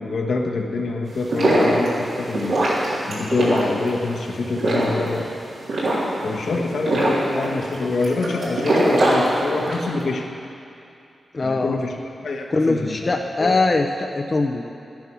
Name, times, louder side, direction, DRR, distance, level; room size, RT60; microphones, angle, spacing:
voice 1, 0.0-5.3 6.2-10.3 11.4-11.9 12.2-13.5, left 3 dB, 75° left, 0 dB, 1.4 m, -26 dB
sound 1, 1.1-9.9, right 1 dB, 80° right, 3.5 m, -22 dB
voice 2, 11.3-11.8 12.5-14.6, left 3 dB, 40° left, 3 dB, 0.6 m, -22 dB
12.0 x 10.5 x 6.2 m, 2.6 s
wide cardioid pair, 85°, 0 cm